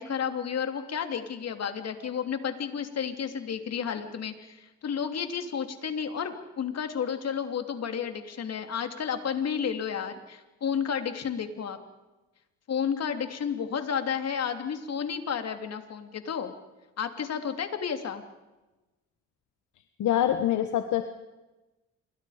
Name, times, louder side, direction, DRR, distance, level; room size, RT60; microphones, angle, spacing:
voice 1, 0.0-11.8 12.7-16.5 17.0-18.2, left 7 dB, 55° left, 7 dB, 3.0 m, -31 dB
voice 2, 20.0-21.0, left 11 dB, 75° left, 8 dB, 1.4 m, -25 dB
28.5 x 24.0 x 5.1 m, 1.1 s
cardioid pair, 90°, 30 cm